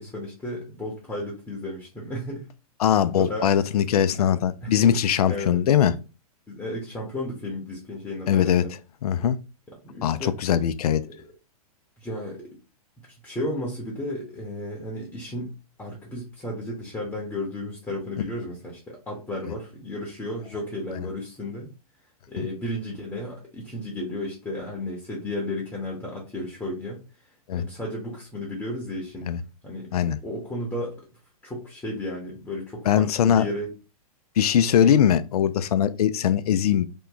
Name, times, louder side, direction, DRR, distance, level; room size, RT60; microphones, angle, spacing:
voice 1, 0.0-2.5 3.2-3.5 4.1-4.2 4.6-4.8 5.3-5.6 6.5-8.7 9.8-10.3 12.0-12.5 13.1-15.5 15.8-21.7 22.3-27.0 27.5-29.3 29.6-29.9 30.2-31.0 31.4-33.7 34.8-35.0, left 1 dB, 10° left, 0.9 m, -33 dB
voice 2, 2.8-5.9 8.3-8.6 9.0-9.4 10.0-11.0 22.4-22.5 27.5-27.6 29.3-29.4 29.9-30.2 32.9-33.5 34.4-36.9, left 9 dB, 75° left, 0.4 m, -21 dB
2.9 x 2.2 x 3.8 m
hypercardioid pair, 125°, 20 cm